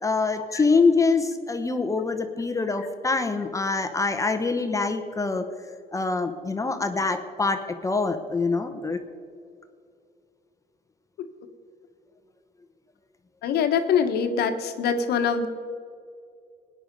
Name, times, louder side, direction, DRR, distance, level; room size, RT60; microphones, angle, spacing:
voice 1, 0.0-5.4 5.9-9.0, left 4 dB, 20° left, 7 dB, 0.9 m, -25 dB
voice 2, 13.4-15.5, left 6 dB, 70° left, 7 dB, 1.3 m, -23 dB
18.5 x 9.9 x 5.3 m, 2.4 s
cardioid pair, 110°, 17 cm